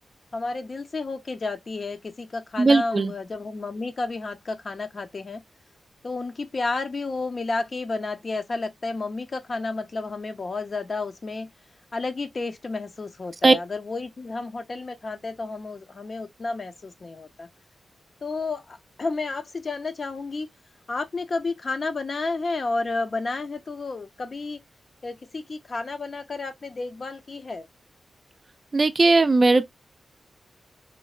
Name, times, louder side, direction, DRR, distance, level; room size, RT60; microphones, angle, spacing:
voice 1, 0.3-5.4 6.0-11.5 11.9-17.5 18.2-20.5 20.9-24.6 25.0-27.7, left 3 dB, 55° left, 0.5 m, -31 dB
voice 2, 2.6-3.1 13.4-13.5 28.7-29.7, right 3 dB, 45° right, 0.4 m, -18 dB
3.1 x 2.0 x 2.3 m
cardioid pair, 60°, 0 cm